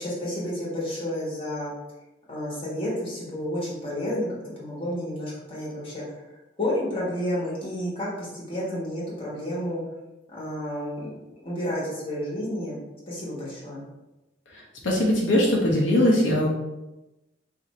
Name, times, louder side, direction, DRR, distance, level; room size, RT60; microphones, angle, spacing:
voice 1, 0.0-1.7 2.3-4.3 4.6-6.0 6.6-9.8 10.3-11.1 11.4-12.8 13.1-13.9, left 1 dB, 30° left, -7 dB, 1.2 m, -30 dB
voice 2, 14.8-16.5, left 1 dB, 85° left, -2 dB, 0.7 m, -20 dB
2.6 x 2.5 x 4.1 m, 1.0 s
head